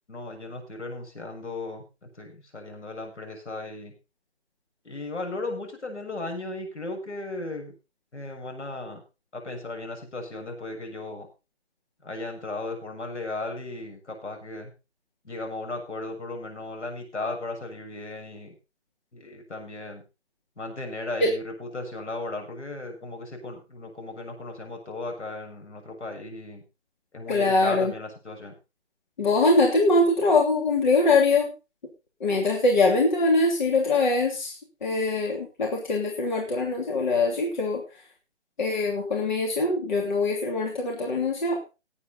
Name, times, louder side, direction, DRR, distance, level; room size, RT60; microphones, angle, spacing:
voice 1, 0.1-1.8 2.2-3.9 4.8-7.7 8.1-9.0 9.3-11.3 12.0-14.7 15.2-18.5 19.1-20.0 20.6-26.6 27.1-28.5, left 2 dB, 75° left, 3 dB, 7.1 m, -36 dB
voice 2, 27.3-27.9 29.2-31.5 32.2-37.8 38.6-41.6, left 2 dB, 40° left, 0 dB, 3.0 m, -23 dB
18.5 x 8.5 x 4.0 m, 0.29 s
hypercardioid pair, 165°, 35 cm